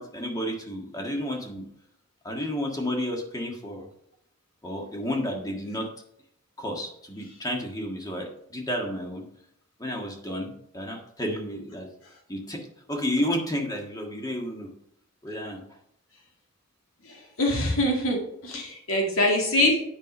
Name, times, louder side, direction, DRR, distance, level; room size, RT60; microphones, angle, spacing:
voice 1, 0.0-1.6 2.2-3.9 4.6-5.9 6.6-9.2 9.8-11.9 12.3-14.7 15.2-15.6, left 1 dB, 15° left, 1 dB, 1.6 m, -31 dB
voice 2, 17.0-19.8, left 1 dB, 65° left, 0 dB, 2.3 m, -24 dB
8.9 x 5.7 x 5.3 m, 0.73 s
head